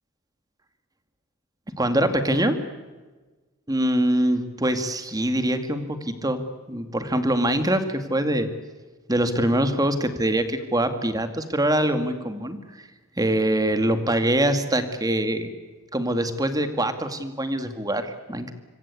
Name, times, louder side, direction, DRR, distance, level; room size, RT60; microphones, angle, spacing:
voice 1, 1.8-2.6 3.7-6.4 6.7-8.5 9.1-12.9 13.2-15.5 15.9-18.5, right 1 dB, 15° right, 8 dB, 2.2 m, -24 dB
26.0 x 24.5 x 8.5 m, 1.3 s
head